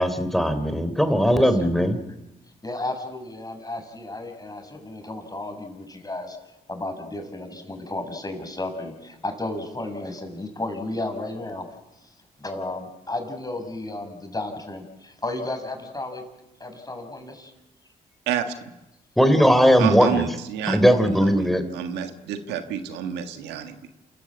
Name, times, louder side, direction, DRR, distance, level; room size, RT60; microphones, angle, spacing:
voice 1, 0.0-2.0 19.2-20.3 20.7-21.6, equal, ahead, 9 dB, 3.4 m, -19 dB
voice 2, 1.3-1.7 2.6-6.4 6.7-11.7 11.9-16.2 16.6-17.5 20.8-21.0, left 2 dB, 20° left, 5 dB, 6.1 m, -33 dB
voice 3, 19.8-23.9, right 9 dB, 85° right, 8 dB, 1.6 m, -30 dB
28.0 x 14.0 x 8.6 m, 0.94 s
supercardioid pair, 55°, 17 cm